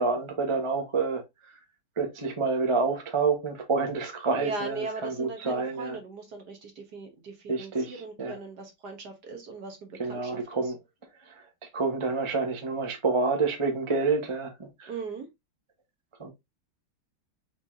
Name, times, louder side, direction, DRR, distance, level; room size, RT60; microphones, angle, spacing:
voice 1, 0.0-1.6 2.0-6.0 7.5-8.4 10.0-10.8 11.2-11.5 11.7-14.9 16.2-16.3, right 4 dB, 20° right, 0.8 m, -28 dB
voice 2, 4.3-10.6 14.9-15.3, right 4 dB, 55° right, 1.5 m, -38 dB
5.4 x 3.4 x 2.6 m
omnidirectional pair, 2.4 m